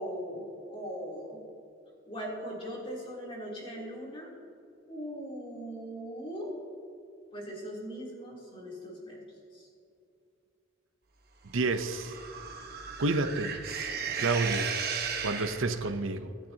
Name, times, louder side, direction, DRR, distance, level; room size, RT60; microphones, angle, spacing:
voice 1, 0.0-1.4 2.1-4.3 4.9-6.5 7.3-9.2 9.5-9.7, equal, 25° left, -4 dB, 3.3 m, -39 dB
voice 2, 11.5-12.1 13.0-13.5 14.2-14.7 15.2-16.3, right 3 dB, 80° right, 9 dB, 0.8 m, -29 dB
sound 1, 11.6-15.9, right 6 dB, 50° right, 1.3 m, -35 dB
25.0 x 10.5 x 2.9 m, 2.5 s
head